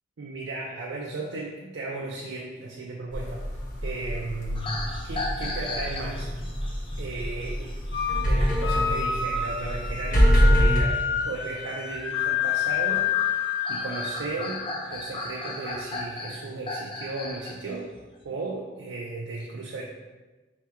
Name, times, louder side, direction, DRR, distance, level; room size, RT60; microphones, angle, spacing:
voice 1, 0.2-3.4 3.8-6.4 7.0-7.8 8.2-17.9 18.2-19.8, right 2 dB, 85° right, -2 dB, 0.5 m, -35 dB
sound 1, 3.1-10.8, equal, 50° left, 0.9 m, -25 dB
sound 2, 4.5-17.5 17.9-18.2, left 2 dB, 30° left, 0.5 m, -37 dB
sound 3, 7.9-8.3 8.6-14.7, left 7 dB, 85° left, 1.1 m, -28 dB
4.3 x 2.8 x 3.5 m, 1.2 s
head